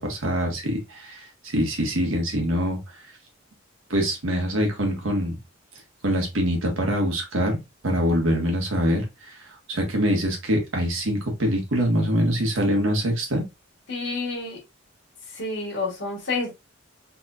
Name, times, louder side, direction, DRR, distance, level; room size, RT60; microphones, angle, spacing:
voice 1, 0.0-2.8 3.9-5.4 6.0-7.6 7.8-13.4, equal, 80° right, 1.5 m, -24 dB
voice 2, 13.9-14.6 15.3-16.5, left 3 dB, 65° left, 1.7 m, -29 dB
4.0 x 3.5 x 2.4 m
head